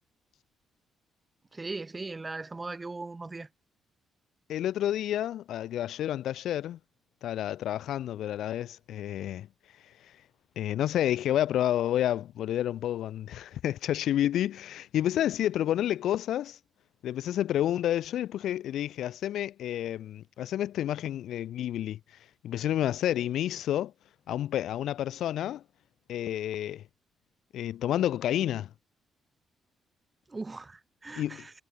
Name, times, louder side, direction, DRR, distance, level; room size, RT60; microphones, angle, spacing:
voice 1, 1.5-3.5 30.3-31.5, right 3 dB, 25° right, 7.4 m, -39 dB
voice 2, 4.5-6.8 7.2-9.5 10.6-16.6 17.0-22.0 22.4-23.9 24.3-25.6 26.1-26.8 27.5-28.7 31.1-31.4, left 12 dB, 75° left, 1.4 m, -30 dB
supercardioid pair, 55°, 0 cm